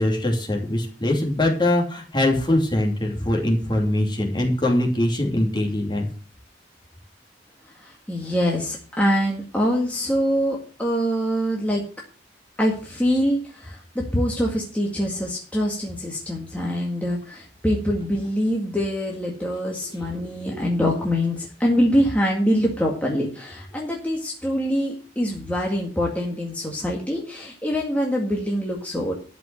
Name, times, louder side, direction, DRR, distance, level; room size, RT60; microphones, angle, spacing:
voice 1, 0.0-6.0, left 1 dB, 25° left, 0 dB, 2.9 m, -22 dB
voice 2, 7.8-11.8 12.6-13.8 14.1-29.1, equal, 10° left, -2 dB, 1.9 m, -24 dB
12.5 x 5.4 x 8.6 m, 0.41 s
head